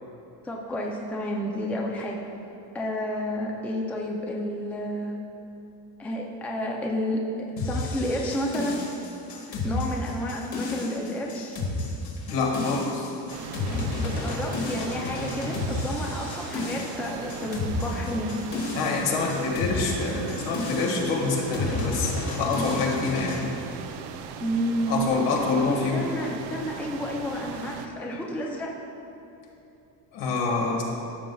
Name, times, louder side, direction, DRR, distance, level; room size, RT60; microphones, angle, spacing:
voice 1, 0.4-2.2 2.7-5.2 6.0-7.2 7.6-8.8 9.6-11.6 14.0-18.4 24.4-25.1 25.9-28.7, equal, 5° left, -2 dB, 0.4 m, -30 dB
sound 1, 7.6-23.4, left 2 dB, 60° left, 1.9 m, -31 dB
voice 2, 12.3-13.1 18.7-23.5 24.9-26.1 30.1-30.8, left 4 dB, 75° left, -1 dB, 1.8 m, -26 dB
sound 2, 13.3-27.9, right 7 dB, 65° right, 0.6 m, -39 dB
14.0 x 6.9 x 2.3 m, 2.8 s
cardioid pair, 155°, 43 cm